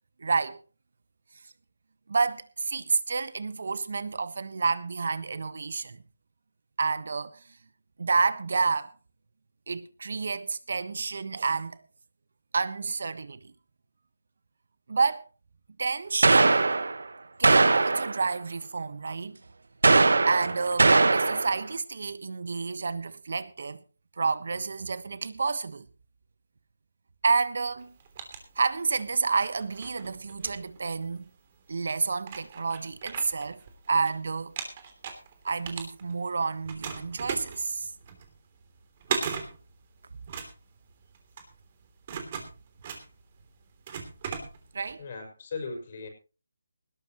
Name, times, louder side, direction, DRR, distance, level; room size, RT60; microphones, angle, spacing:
voice 1, 0.2-0.6 2.1-6.0 6.8-7.4 8.0-8.9 9.7-11.8 12.5-13.5 14.9-15.3 15.8-16.8 17.4-19.4 20.3-23.8 24.2-25.8 27.2-27.9 28.5-31.3 31.7-33.6 33.9-34.5 35.4-37.9 44.7-45.0, right 4 dB, 60° right, 1.3 m, -29 dB
sound 1, 16.2-17.0 17.4-18.2 19.8-21.6, right 3 dB, 75° right, 1.0 m, -20 dB
sound 2, 27.8-29.1 29.6-31.2 31.8-31.9 32.2-34.1 34.4-36.3 36.6-44.9, right 6 dB, 30° right, 3.2 m, -38 dB
voice 2, 45.0-46.1, left 4 dB, 40° left, 5.6 m, -37 dB
19.5 x 13.0 x 3.1 m
figure-of-eight pair, 160°, 0 cm